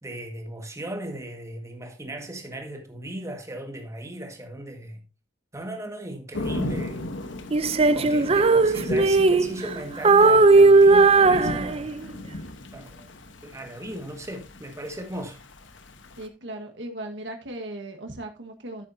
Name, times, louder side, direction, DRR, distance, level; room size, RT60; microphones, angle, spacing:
voice 1, 0.0-5.0 5.5-7.1 7.9-11.9 12.7-13.1 13.4-15.4, right 1 dB, 15° right, 1.7 m, -37 dB
Thunder / Rain, 6.3-16.3, left 1 dB, 85° left, 1.1 m, -37 dB
Female singing, 7.5-9.7 10.0-12.1, right 3 dB, 35° right, 0.5 m, -17 dB
voice 2, 16.2-18.9, right 1 dB, 70° right, 1.5 m, -37 dB
10.5 x 9.1 x 2.7 m
head